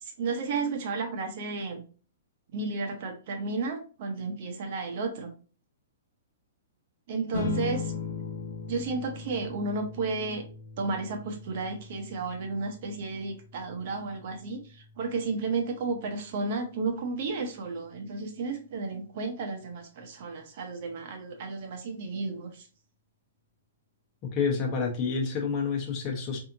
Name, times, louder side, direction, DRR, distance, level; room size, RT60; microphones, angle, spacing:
voice 1, 0.0-1.8 2.5-5.3 7.1-7.9 8.7-10.4 10.8-22.7, right 3 dB, 45° right, 4 dB, 0.9 m, -33 dB
sound 1, 7.3-18.1, left 4 dB, 55° left, 0.9 m, -40 dB
voice 2, 24.3-26.4, left 5 dB, 25° left, 0 dB, 1.1 m, -28 dB
4.1 x 2.7 x 2.7 m, 0.37 s
hypercardioid pair, 160°, 0 cm